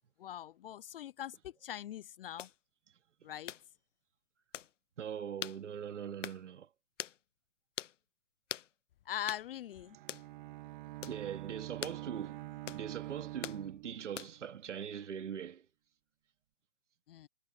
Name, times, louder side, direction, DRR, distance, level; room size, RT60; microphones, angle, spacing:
voice 1, 0.2-2.5 3.2-3.5 9.1-10.0 17.1-17.3, left 11 dB, 50° left, 0.6 m, -42 dB
sound 1, 2.4-2.6 3.5-3.7 4.5-4.7 5.4-5.6 6.2-6.4 7.0-7.2 7.8-8.0 8.5-8.7 9.3-9.5 10.1-10.3 11.0-11.2 11.8-12.0 12.7-12.9 13.4-13.6 14.2-14.5, left 10 dB, 80° left, 0.8 m, -42 dB
voice 2, 5.0-6.7 11.1-12.4 12.7-15.7, right 8 dB, 75° right, 2.7 m, -41 dB
Bowed string instrument, 9.7-14.4, right 17 dB, 40° right, 1.9 m, -46 dB
hypercardioid pair, 140°, 37 cm